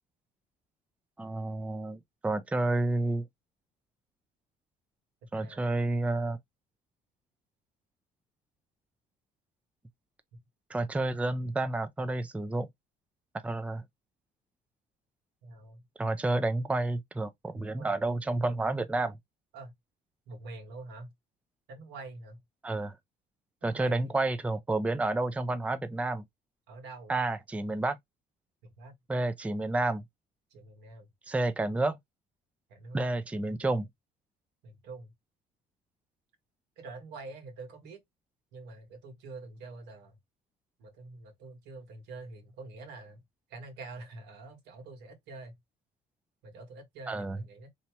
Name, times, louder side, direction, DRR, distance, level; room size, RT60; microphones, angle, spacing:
voice 1, 1.2-3.2 5.3-6.4 10.7-12.7 13.4-13.8 16.0-19.2 22.6-23.0 23.6-26.2 27.1-28.0 29.1-30.0 31.3-32.0 32.9-33.9 47.1-47.4, right 2 dB, 10° right, 0.4 m, -30 dB
voice 2, 5.3-5.7 10.3-10.4 15.4-15.9 17.5-18.1 19.5-19.7 20.3-21.1 21.7-22.4 23.6-24.2 26.7-27.1 28.6-28.9 30.5-31.1 32.7-33.0 34.6-35.1 36.8-38.0 38.5-40.2 40.8-43.2 43.5-45.6 46.4-47.7, right 3 dB, 90° right, 1.6 m, -46 dB
2.9 x 2.8 x 4.5 m
cardioid pair, 110°, 17 cm